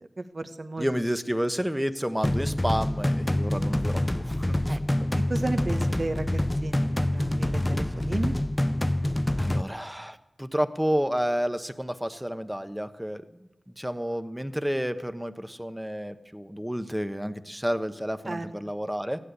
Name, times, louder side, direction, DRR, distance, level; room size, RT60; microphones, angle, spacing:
voice 1, 0.2-0.9 4.7-4.8 5.3-8.4 18.3-18.5, right 2 dB, 55° right, 8 dB, 1.1 m, -33 dB
voice 2, 0.8-4.8 9.4-13.5 13.8-19.2, equal, 5° right, 10 dB, 1.0 m, -30 dB
sound 1, 2.2-9.6, left 1 dB, 20° left, 0.4 m, -26 dB
15.0 x 10.5 x 8.2 m, 0.96 s
wide cardioid pair, 55°, 0 cm